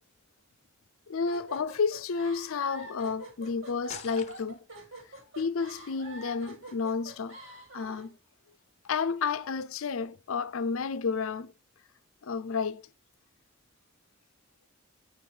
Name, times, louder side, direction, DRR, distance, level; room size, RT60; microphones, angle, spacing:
voice 1, 1.1-4.6 5.4-7.4 7.7-8.2 8.8-11.5 12.2-12.8, left 5 dB, 85° left, 0.5 m, -31 dB
sound 1, 1.3-8.1, right 2 dB, 75° right, 2.4 m, -46 dB
sound 2, 3.9-4.8, left 7 dB, 35° left, 0.7 m, -45 dB
7.8 x 5.7 x 3.3 m
head